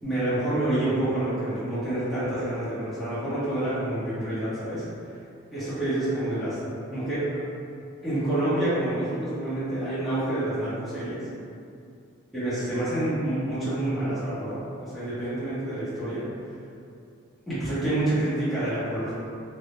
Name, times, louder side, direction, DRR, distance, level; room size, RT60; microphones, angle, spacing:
voice 1, 0.0-4.8 5.5-6.6 6.9-7.3 8.0-11.2 12.3-16.3 17.5-19.1, right 1 dB, ahead, -15 dB, 0.7 m, -28 dB
2.2 x 2.0 x 2.9 m, 2.4 s
head